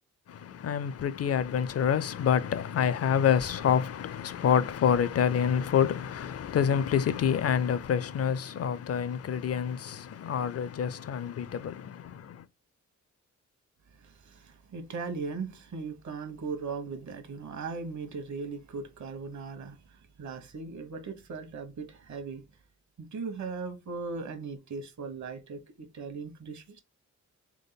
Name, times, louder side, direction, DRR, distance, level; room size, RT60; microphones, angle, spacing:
voice 1, 0.3-12.4, left 8 dB, 50° left, 0.5 m, -27 dB
voice 2, 14.0-22.4 23.0-26.8, right 4 dB, 65° right, 1.2 m, -38 dB
3.6 x 3.6 x 4.0 m
wide cardioid pair, 105°, 31 cm